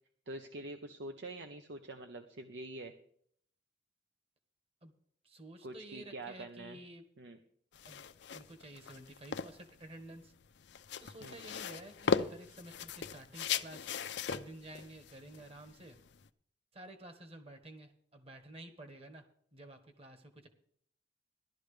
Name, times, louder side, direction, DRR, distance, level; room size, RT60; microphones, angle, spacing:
voice 1, 0.3-2.9 5.6-6.8 7.2-7.4 11.2-11.4, right 2 dB, 85° right, 6 dB, 0.9 m, -45 dB
voice 2, 5.2-7.0 7.8-8.0 8.3-10.3 11.0-13.9 14.2-16.0 16.7-19.2 19.5-20.5, right 1 dB, 35° right, 6 dB, 1.5 m, -51 dB
sound 1, 7.7-16.3, left 6 dB, 75° left, 0.5 m, -38 dB
15.5 x 12.0 x 3.3 m, 0.64 s
head